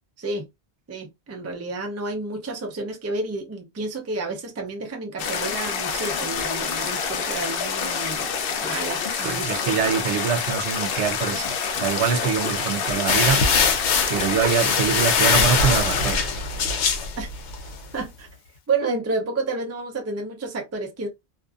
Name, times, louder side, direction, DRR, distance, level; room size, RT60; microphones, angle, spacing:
voice 1, 0.9-8.3 8.6-9.7 17.2-17.3 17.9-18.3 18.7-21.1, right 3 dB, 25° right, 0.3 m, -30 dB
sound 1, 5.2-16.2, left 6 dB, 65° left, 0.7 m, -27 dB
voice 2, 9.2-13.4 14.1-16.3, right 7 dB, 85° right, 0.9 m, -24 dB
sound 2, 13.1-17.7, left 5 dB, 90° left, 0.9 m, -22 dB
2.5 x 2.5 x 2.4 m
omnidirectional pair, 1.1 m